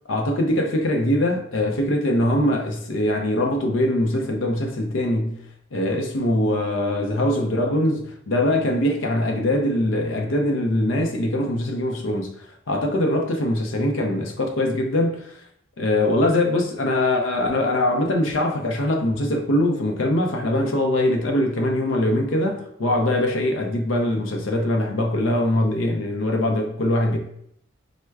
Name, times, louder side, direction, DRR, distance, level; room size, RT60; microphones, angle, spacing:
voice 1, 0.1-5.4 5.7-15.4 15.8-27.2, left 1 dB, 80° left, 0.5 m, -22 dB
4.4 x 2.1 x 2.3 m
head